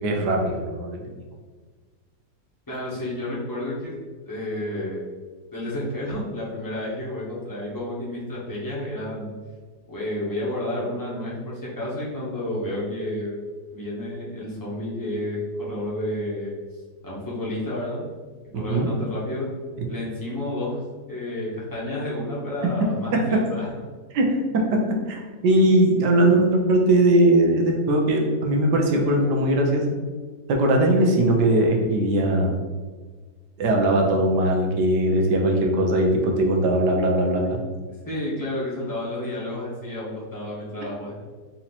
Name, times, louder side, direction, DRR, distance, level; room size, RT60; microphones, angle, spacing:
voice 1, 0.0-1.1 18.5-18.9 24.1-24.8 25.1-29.8 30.5-32.6 33.6-37.6, right 1 dB, 75° right, 1 dB, 1.3 m, -20 dB
voice 2, 2.7-3.9 4.2-5.0 5.5-9.3 9.9-13.4 13.7-16.5 17.0-18.0 18.5-19.5 19.9-20.8 21.1-23.7 38.0-41.2, left 1 dB, 15° left, -6 dB, 0.9 m, -30 dB
4.3 x 2.9 x 4.0 m, 1.4 s
omnidirectional pair, 1.9 m